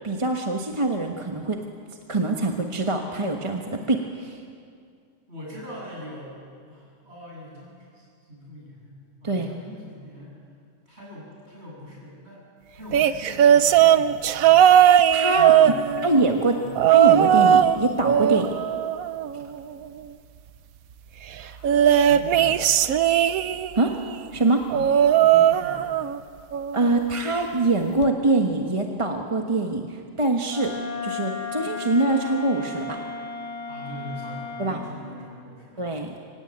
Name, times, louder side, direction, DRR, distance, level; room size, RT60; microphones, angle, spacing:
voice 1, 0.0-1.6 2.1-4.4 9.2-9.5 14.9-15.5 16.0-16.6 16.9-18.5 23.7-23.9 24.3-24.6 26.7-30.7 31.0-33.0 34.6-34.8 35.8-36.1, right 2 dB, 25° right, 2 dB, 1.2 m, -24 dB
voice 2, 5.3-6.4 6.7-10.3 10.8-12.4 12.7-14.6 15.3-16.8 21.4-22.6 24.7-25.9 33.7-35.8, left 1 dB, 50° right, -4 dB, 8.5 m, -42 dB
sound 1, 12.9-16.2 16.8-17.8 18.0-19.6 21.6-23.8 24.7-26.2 26.5-26.9 28.0-28.1, right 10 dB, 85° right, 1.2 m, -18 dB
Wind instrument woodwind instrument, 30.5-34.8, left 5 dB, 45° left, 2.4 m, -34 dB
24.5 x 17.0 x 8.9 m, 2.2 s
omnidirectional pair, 1.4 m